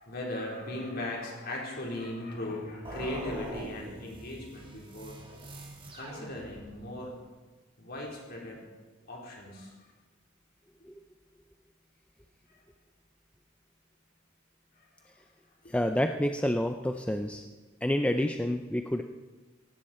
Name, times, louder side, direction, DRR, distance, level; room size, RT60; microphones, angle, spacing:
voice 1, 0.0-5.1 5.9-7.1 7.8-8.6 9.1-9.7 14.8-14.9 15.6-15.7, left 1 dB, 50° left, -2 dB, 3.9 m, -38 dB
sound 1, 2.8-7.0, right 1 dB, 25° right, 2.6 m, -44 dB
voice 2, 15.7-17.4 17.8-19.0, left 1 dB, 5° left, 6 dB, 0.5 m, -28 dB
17.0 x 16.5 x 4.4 m, 1.3 s
head